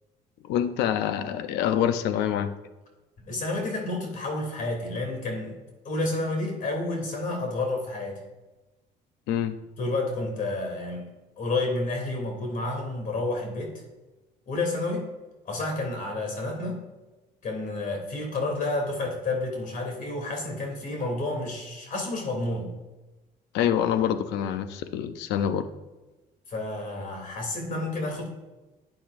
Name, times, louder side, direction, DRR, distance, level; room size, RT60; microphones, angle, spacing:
voice 1, 0.4-2.5 9.3-9.6 23.5-25.7, left 9 dB, 85° left, 10 dB, 0.6 m, -26 dB
voice 2, 3.2-5.5 5.8-8.2 9.8-11.1 11.4-13.8 14.5-15.1 15.4-16.8 17.4-22.7 26.5-28.3, left 2 dB, 50° left, 1 dB, 3.0 m, -30 dB
12.0 x 8.4 x 2.6 m, 1.1 s
cardioid pair, 110°, 17 cm